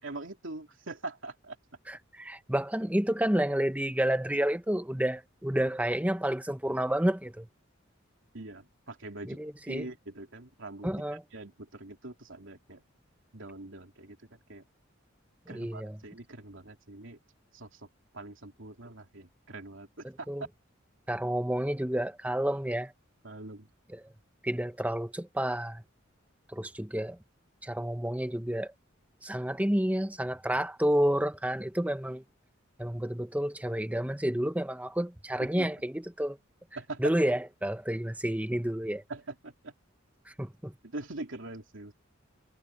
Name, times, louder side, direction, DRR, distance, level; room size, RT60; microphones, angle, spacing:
voice 1, 0.0-1.6 8.3-9.4 9.7-10.9 11.3-12.8 13.3-14.6 15.5-17.2 17.5-17.9 18.1-20.3 23.2-23.7 35.4-35.7 36.7-37.2 39.1-39.7 40.8-41.9, right 2 dB, 70° right, 3.2 m, -43 dB
voice 2, 1.9-7.5 9.3-9.9 10.8-11.2 15.5-16.0 20.3-20.4 21.1-22.9 23.9-24.0 24.4-25.8 26.5-27.2 27.6-28.7 29.2-32.2 32.8-36.4 37.0-39.0 40.4-40.7, right 1 dB, 10° right, 1.3 m, -30 dB
head